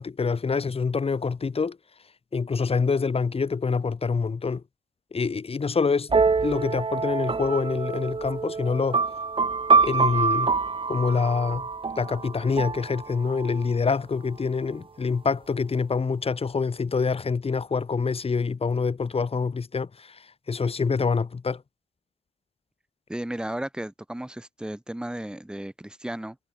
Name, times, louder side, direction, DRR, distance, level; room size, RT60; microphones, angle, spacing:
voice 1, 0.0-1.8 2.3-4.6 5.1-6.1 6.4-9.0 9.8-10.5 10.9-11.7 12.0-20.2 20.5-21.6, left 5 dB, 30° left, 6.3 m, -26 dB
sound 1, 6.1-13.7, right 4 dB, 25° right, 3.0 m, -25 dB
voice 2, 23.1-26.4, right 1 dB, 5° right, 3.3 m, -34 dB
cardioid pair, 140°, 20 cm